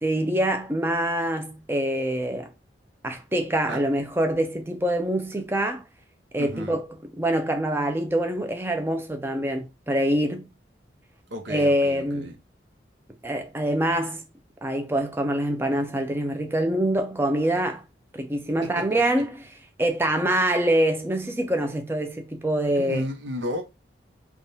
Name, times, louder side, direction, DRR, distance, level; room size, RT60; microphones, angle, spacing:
voice 1, 0.0-2.5 3.0-5.8 6.3-6.9 7.2-10.4 11.5-12.3 13.2-14.2 14.6-17.8 18.1-19.4 19.8-23.1, right 1 dB, 10° right, 0.4 m, -25 dB
voice 2, 6.4-6.8 11.3-12.4 18.6-19.0 22.7-23.6, equal, 75° right, 0.8 m, -33 dB
3.4 x 2.3 x 2.7 m
head